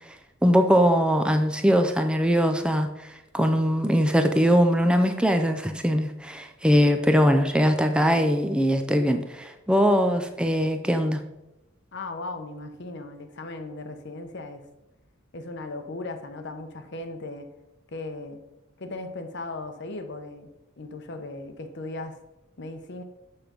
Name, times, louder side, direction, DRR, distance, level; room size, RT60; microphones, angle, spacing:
voice 1, 0.4-11.2, equal, 5° right, 6 dB, 0.5 m, -21 dB
voice 2, 11.9-14.7 15.3-17.5 17.9-18.4 18.8-20.5 20.8-22.2 22.6-23.0, left 2 dB, 60° left, 7 dB, 0.9 m, -37 dB
6.9 x 6.0 x 5.1 m, 0.95 s
head